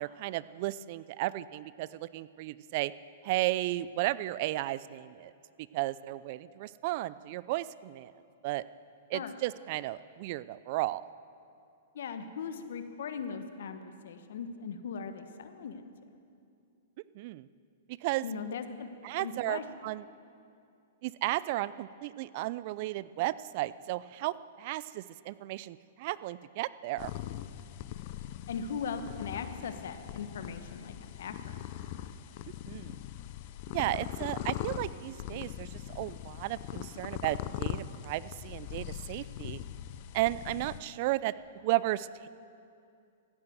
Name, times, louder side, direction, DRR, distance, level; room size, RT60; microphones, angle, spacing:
voice 1, 0.0-2.9 3.2-5.3 5.7-8.1 8.4-8.6 9.1-11.0 17.1-17.5 18.0-18.2 19.0-20.0 21.0-27.1 32.7-33.0 33.7-39.6 40.1-41.3 41.6-42.3, right 17 dB, 50° right, 18 dB, 0.4 m, -34 dB
voice 2, 11.9-15.9 18.2-18.9 19.2-19.6 28.5-31.6, left 6 dB, 75° left, 9 dB, 1.2 m, -39 dB
sound 1, 27.0-40.8, left 12 dB, 45° left, 0.6 m, -41 dB
14.5 x 9.8 x 7.9 m, 2.5 s
hypercardioid pair, 135°, 0 cm